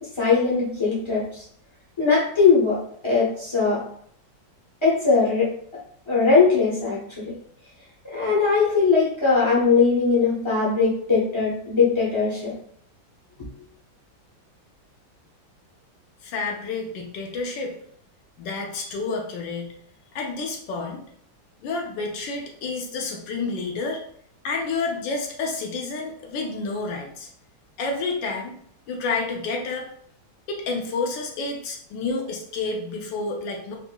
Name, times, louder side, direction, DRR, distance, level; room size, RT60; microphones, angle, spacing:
voice 1, 0.2-1.4 2.0-2.8 3.0-3.8 4.8-5.5 6.1-7.3 8.1-12.5, left 4 dB, 30° left, -7 dB, 0.5 m, -20 dB
voice 2, 16.2-17.7 18.4-19.8 20.1-21.0 21.6-24.0 24.4-27.3 27.8-28.5 28.9-29.9 30.5-33.8, left 3 dB, 75° left, 1 dB, 1.3 m, -29 dB
4.2 x 2.7 x 2.2 m, 0.65 s
omnidirectional pair, 2.1 m